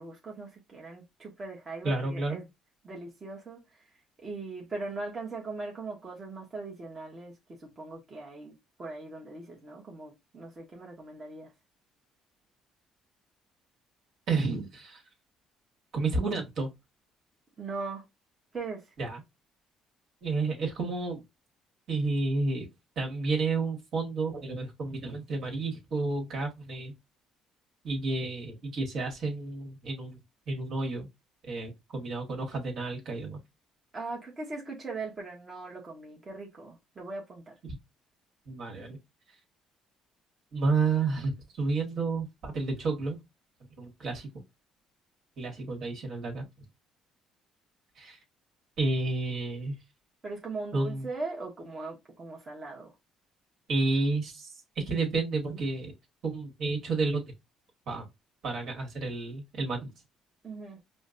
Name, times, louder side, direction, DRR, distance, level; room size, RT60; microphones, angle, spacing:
voice 1, 0.0-2.5 2.8-11.5 17.6-18.0 18.5-18.9 33.9-37.6 50.2-53.0 60.4-60.8, right 3 dB, 30° right, 1.1 m, -40 dB
voice 2, 1.8-2.4 14.3-15.0 15.9-16.7 19.0-19.2 20.2-21.2 21.9-22.7 22.9-26.9 27.8-30.2 30.5-31.1 31.4-33.4 38.5-39.0 40.5-43.2 43.8-44.3 45.4-46.5 47.9-48.2 48.8-49.8 50.7-51.1 53.7-55.9 56.2-57.2 57.9-58.0 58.4-59.9, right 3 dB, 60° right, 1.7 m, -31 dB
5.0 x 2.2 x 2.5 m
cardioid pair, 95°, 0 cm